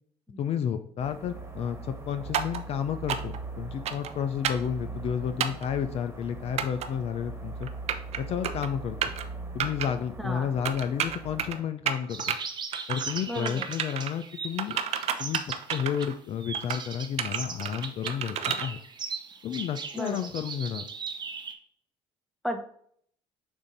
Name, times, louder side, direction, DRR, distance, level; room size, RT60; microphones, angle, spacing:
voice 1, 0.4-7.7 8.2-9.0 9.5-12.4 12.9-14.8 15.2-15.4 15.7-18.8 19.4-20.8, left 8 dB, 55° left, 9 dB, 0.5 m, -31 dB
sound 1, 1.0-11.6, right 3 dB, 20° right, 1.4 m, -41 dB
sound 2, 2.3-2.6 3.1-3.4 3.8-4.1 4.4-4.7 5.4-5.7 6.6-6.9 7.6-8.2 8.4-8.7 9.0-9.2 9.6-9.9 10.6-11.6 11.9-12.4 12.7-13.2 13.4-14.1 14.6-16.1 16.5-16.8 17.2-18.6, right 8 dB, 60° right, 0.7 m, -30 dB
voice 2, 10.2-10.5 13.3-13.7 19.9-20.2 22.4-22.6, equal, ahead, 5 dB, 1.0 m, -33 dB
sound 3, 12.1-16.1 16.4-21.5, right 5 dB, 35° right, 1.0 m, -38 dB
6.9 x 2.7 x 5.1 m, 0.63 s
cardioid pair, 95°, 12 cm